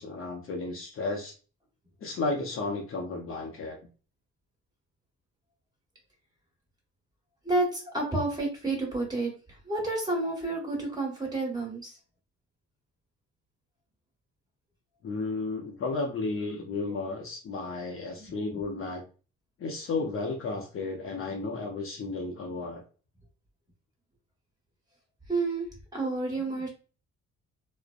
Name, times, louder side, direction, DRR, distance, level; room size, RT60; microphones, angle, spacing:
voice 1, 0.0-1.3 2.0-3.8 15.0-19.0 19.6-22.8, left 3 dB, 45° left, 1 dB, 0.6 m, -33 dB
voice 2, 7.4-9.3 9.6-12.0 16.9-17.0 18.2-18.6 25.3-25.7 25.9-26.7, right 2 dB, 15° right, -2 dB, 1.4 m, -30 dB
2.5 x 2.1 x 2.4 m, 0.36 s
cardioid pair, 90°, 30 cm